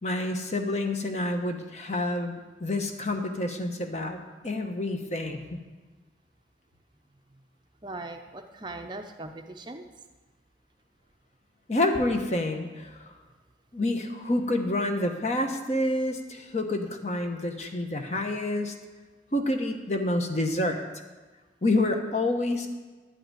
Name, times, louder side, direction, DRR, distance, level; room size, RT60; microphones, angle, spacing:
voice 1, 0.0-4.2 4.4-5.6 11.7-13.1 13.7-18.8 19.3-20.8 21.6-22.7, left 1 dB, 40° left, 5 dB, 1.0 m, -28 dB
voice 2, 7.8-9.8, right 2 dB, 25° right, 5 dB, 0.6 m, -40 dB
11.0 x 5.7 x 8.9 m, 1.3 s
head